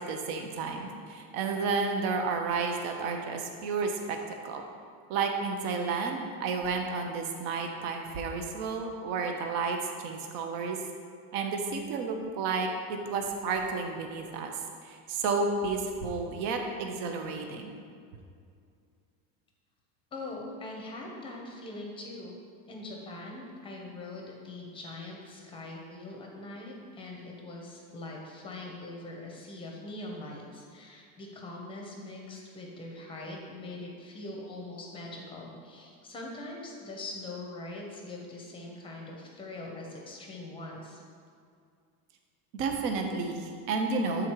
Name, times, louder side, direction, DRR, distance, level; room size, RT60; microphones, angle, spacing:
voice 1, 0.1-4.2 4.4-4.6 5.1-9.8 10.0-10.8 11.3-14.5 14.8-17.7 42.5-44.3, right 4 dB, 55° right, 3 dB, 0.8 m, -31 dB
voice 2, 20.1-22.4 22.7-41.0, left 2 dB, 15° left, 0 dB, 0.7 m, -42 dB
8.0 x 3.8 x 4.6 m, 2.3 s
cardioid pair, 175°, 39 cm